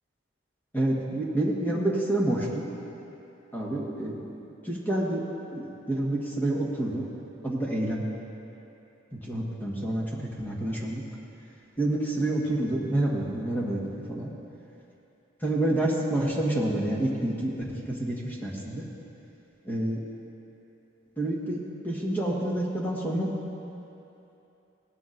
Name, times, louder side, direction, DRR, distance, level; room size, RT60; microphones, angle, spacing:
voice 1, 0.7-2.7 3.5-4.4 4.6-5.2 5.5-7.0 7.4-8.0 9.3-11.0 11.8-13.8 14.1-14.3 15.4-17.5 17.9-18.8 19.6-20.0 21.2-21.6 21.8-23.3, right 1 dB, 10° left, -4 dB, 1.4 m, -28 dB
17.5 x 12.5 x 2.6 m, 2.9 s
head